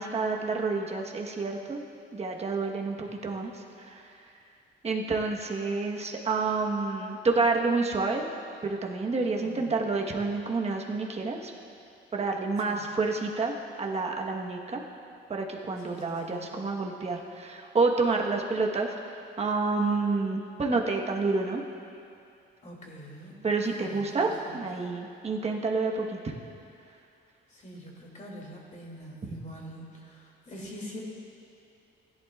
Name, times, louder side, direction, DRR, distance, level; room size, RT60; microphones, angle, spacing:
voice 1, 0.0-1.8 2.1-3.5 3.9-4.0 4.8-8.2 8.6-11.5 12.1-14.8 15.3-18.9 19.4-21.6 23.4-26.2, right 3 dB, 30° right, 1 dB, 1.2 m, -29 dB
voice 2, 9.4-9.8 12.7-12.9 15.8-16.5 22.6-23.4 23.8-24.6 27.5-31.0, equal, 40° left, -2 dB, 2.6 m, -45 dB
16.0 x 11.0 x 2.4 m, 2.5 s
cardioid pair, 90°, 20 cm